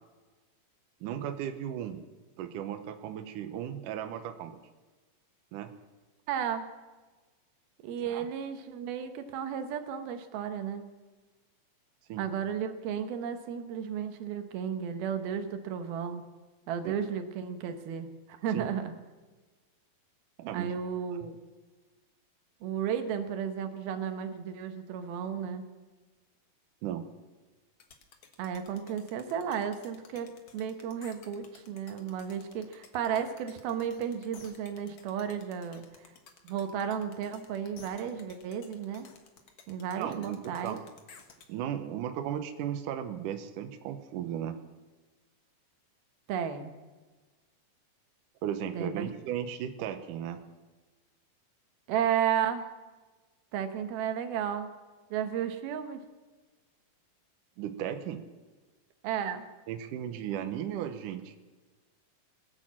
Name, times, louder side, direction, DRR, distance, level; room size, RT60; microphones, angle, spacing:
voice 1, 1.0-2.0 2.4-4.6 5.5-5.7 8.0-8.3 12.1-12.2 16.8-16.9 18.5-18.7 20.4-20.7 26.8-27.1 40.0-40.8 41.5-44.6 48.4-50.4 57.6-58.2 59.7-61.3, right 10 dB, 70° right, 8 dB, 2.3 m, -36 dB
voice 2, 6.3-6.7 7.8-10.8 12.2-16.2 16.7-18.9 20.5-21.4 22.6-25.6 28.4-36.1 36.4-39.1 39.7-40.8 46.3-46.7 48.7-49.1 51.9-52.7 53.5-54.7 55.1-56.0 59.0-59.4, right 8 dB, 90° right, 8 dB, 3.1 m, -33 dB
sound 1, 27.8-41.5, left 5 dB, 55° left, 1.5 m, -55 dB
21.0 x 8.8 x 7.4 m, 1.3 s
omnidirectional pair, 4.2 m